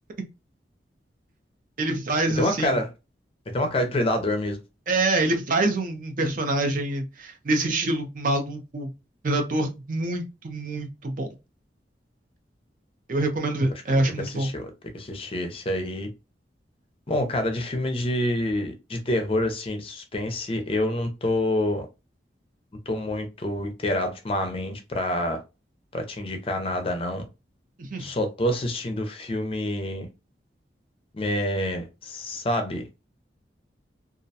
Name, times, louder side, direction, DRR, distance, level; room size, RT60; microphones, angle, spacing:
voice 1, 1.8-2.8 4.9-8.9 9.2-11.3 13.1-14.5 27.8-28.1, right 2 dB, 50° right, 0.5 m, -26 dB
voice 2, 2.4-2.9 3.5-4.6 13.9-14.7 14.9-16.1 17.1-21.9 22.9-25.4 25.9-27.3 28.0-30.1 31.1-32.9, left 1 dB, 30° left, 0.5 m, -27 dB
2.4 x 2.1 x 2.6 m
head